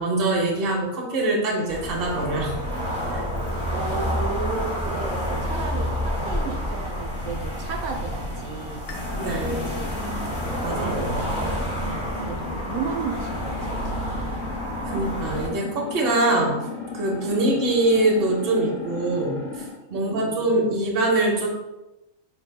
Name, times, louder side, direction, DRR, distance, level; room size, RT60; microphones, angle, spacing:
voice 1, 0.0-2.6 3.1-3.2 9.2-9.7 10.6-11.2 14.9-16.5 16.9-19.4 19.9-21.5, right 2 dB, 50° right, 0 dB, 0.9 m, -23 dB
sound 1, 1.7-15.5, equal, 25° left, 0.9 m, -29 dB
voice 2, 3.7-8.9 9.5-10.0 10.4-14.5 14.8-15.0 17.2-17.6 19.9-20.7, right 5 dB, 85° right, 1 dB, 1.1 m, -34 dB
sound 2, 8.9-19.8, left 4 dB, 70° left, 1.0 m, -35 dB
5.1 x 3.4 x 2.2 m, 1.0 s
omnidirectional pair, 1.5 m